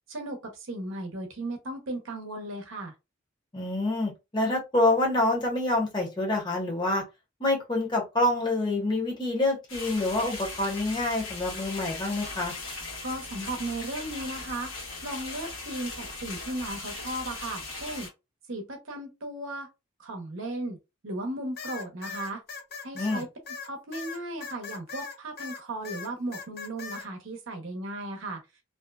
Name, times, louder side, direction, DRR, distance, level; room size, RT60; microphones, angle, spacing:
voice 1, 0.1-2.9 13.0-14.7 15.0-18.1 18.5-19.7 20.0-20.8 21.0-22.4 22.8-23.3 23.6-28.4, right 1 dB, 70° right, 0.7 m, -36 dB
voice 2, 3.5-7.0 7.4-12.5 22.9-23.2, left 2 dB, 20° left, 0.9 m, -27 dB
sound 1, 9.7-18.1, left 3 dB, 70° left, 0.9 m, -39 dB
sound 2, 21.6-25.6 25.8-27.1, left 5 dB, 50° left, 0.5 m, -39 dB
2.6 x 2.2 x 2.2 m
head